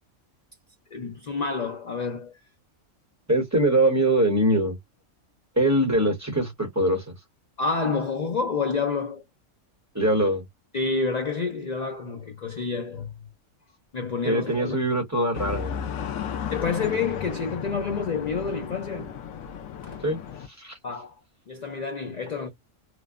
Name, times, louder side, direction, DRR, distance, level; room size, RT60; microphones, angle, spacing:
voice 1, 0.9-2.4 7.6-9.2 10.7-13.1 13.9-14.8 16.5-19.2 19.8-20.0 20.8-21.1 21.5-22.5, left 4 dB, 55° left, 0.4 m, -28 dB
voice 2, 3.3-4.8 5.6-7.0 9.9-10.4 14.2-15.7 20.0-20.2 20.5-20.7, right 1 dB, 15° right, 0.9 m, -22 dB
sound 1, 15.3-20.5, left 8 dB, 90° left, 1.0 m, -34 dB
3.1 x 2.0 x 2.4 m
omnidirectional pair, 1.4 m